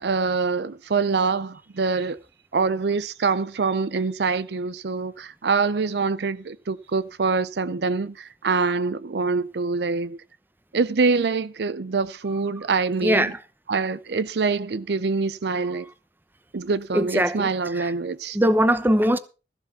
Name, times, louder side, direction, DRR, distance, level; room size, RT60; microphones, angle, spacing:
voice 1, 0.0-2.2 2.5-10.2 10.7-13.3 13.7-15.9 16.5-18.4, right 4 dB, 65° right, 0.5 m, -25 dB
voice 2, 13.0-13.4 16.9-17.5 17.8-17.9 18.3-19.2, equal, 10° right, 0.9 m, -20 dB
14.0 x 7.8 x 5.6 m
head